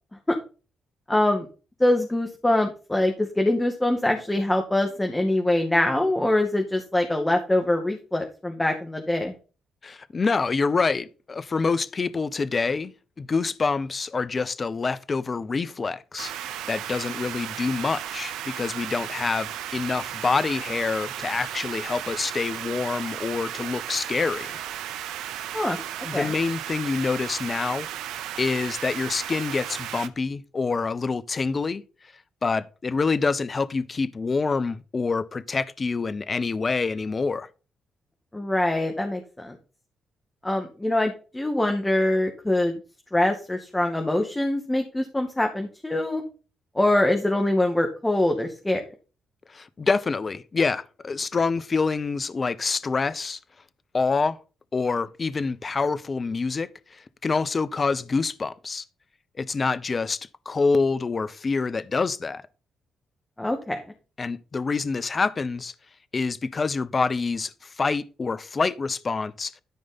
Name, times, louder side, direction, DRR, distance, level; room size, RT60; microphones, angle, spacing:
voice 1, 1.1-1.5 1.8-9.3 25.5-25.8 26.1-26.3 38.3-39.5 40.4-42.8 43.1-46.2 46.8-48.8 63.4-63.8, left 1 dB, 15° left, 2.1 m, -24 dB
voice 2, 9.8-24.6 26.0-27.9 28.4-31.8 32.4-37.5 49.5-53.4 53.9-54.4 54.7-58.8 59.4-60.2 60.5-62.4 64.2-65.7 66.1-69.5, left 4 dB, 40° left, 0.8 m, -26 dB
sound 1, 16.2-30.1, right 11 dB, 75° right, 0.7 m, -35 dB
13.0 x 5.1 x 4.1 m
hypercardioid pair, 45°, 0 cm